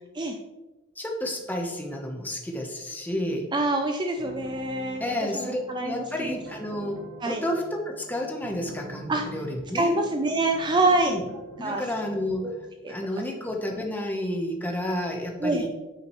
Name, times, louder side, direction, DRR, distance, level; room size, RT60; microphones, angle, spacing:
voice 1, 1.0-3.5 5.0-9.9 11.1-11.2 11.6-12.5 12.9-15.7, left 1 dB, 10° left, 1 dB, 0.9 m, -31 dB
voice 2, 3.5-5.0 5.3-6.0 7.2-7.4 9.1-9.2 9.7-11.2 11.6-11.9 12.4-12.5 12.8-12.9 15.4-15.7, right 2 dB, 20° right, 4 dB, 0.4 m, -25 dB
sound 1, 4.2-12.7, right 2 dB, 80° right, 1.1 m, -45 dB
9.1 x 5.8 x 3.1 m, 1.1 s
head